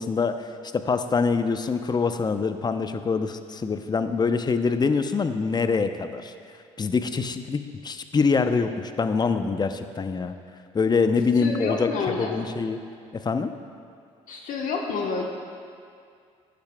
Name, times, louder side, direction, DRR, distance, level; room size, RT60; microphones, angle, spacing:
voice 1, 0.0-6.3 6.8-10.3 10.7-11.9 12.2-12.8 13.1-13.5, left 4 dB, 30° left, 9 dB, 0.7 m, -25 dB
voice 2, 11.4-12.4 14.3-15.2, left 4 dB, 65° left, 1 dB, 1.1 m, -28 dB
14.5 x 10.5 x 2.3 m, 2.3 s
hypercardioid pair, 60°, 15 cm